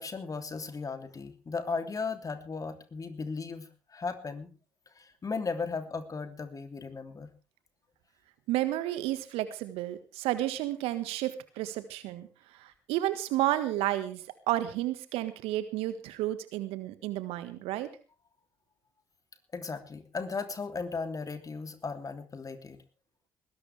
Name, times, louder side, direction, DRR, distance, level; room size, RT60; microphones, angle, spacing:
voice 1, 0.0-4.5 4.9-7.3 19.5-22.8, left 4 dB, 35° left, 7 dB, 3.1 m, -36 dB
voice 2, 8.5-12.3 12.5-17.9, right 14 dB, 70° right, 12 dB, 1.7 m, -31 dB
20.0 x 17.5 x 3.5 m, 0.35 s
figure-of-eight pair, 45°, 10 cm